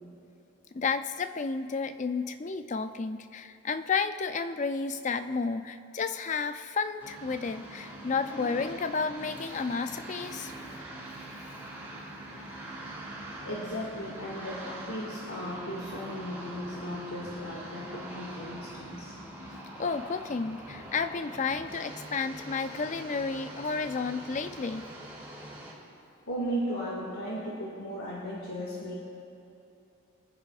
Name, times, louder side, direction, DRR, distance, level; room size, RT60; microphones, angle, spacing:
voice 1, 0.7-10.5 19.8-24.9, left 4 dB, 35° left, 10 dB, 0.4 m, -32 dB
sound 1, 7.0-25.7, right 1 dB, 10° right, 2.7 m, -43 dB
voice 2, 13.4-19.2 26.3-29.0, equal, 80° left, -5 dB, 2.1 m, -36 dB
24.0 x 9.9 x 2.5 m, 2.8 s
head